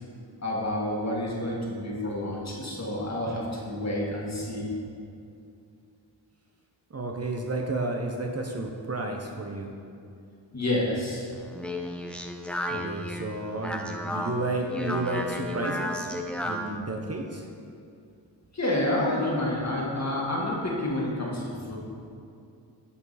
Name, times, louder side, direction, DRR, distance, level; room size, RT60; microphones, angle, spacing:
voice 1, 0.4-4.7 10.5-11.3 18.5-21.8, left 1 dB, 35° left, -3 dB, 1.9 m, -29 dB
voice 2, 6.9-9.7 12.7-17.4, right 2 dB, 35° right, 1 dB, 0.8 m, -32 dB
Speech, 11.3-16.8, left 1 dB, ahead, 0.7 m, -33 dB
11.0 x 4.6 x 4.2 m, 2.5 s
cardioid pair, 55°, 44 cm